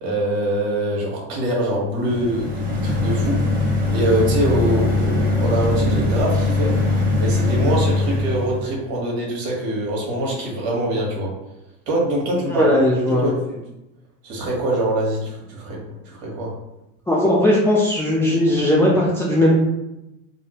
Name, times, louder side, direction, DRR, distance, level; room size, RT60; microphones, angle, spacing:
voice 1, 0.0-3.4 3.9-6.7 7.2-11.3 11.9-12.7 13.0-13.6 14.2-15.8 16.0-16.5, right 1 dB, 50° right, -3 dB, 1.4 m, -24 dB
sound 1, 2.0-8.6, left 2 dB, 20° right, 0.9 m, -21 dB
voice 2, 12.5-13.3 17.1-19.6, left 1 dB, 5° left, -5 dB, 0.4 m, -18 dB
2.8 x 2.7 x 2.9 m, 0.93 s
hypercardioid pair, 90°, 43 cm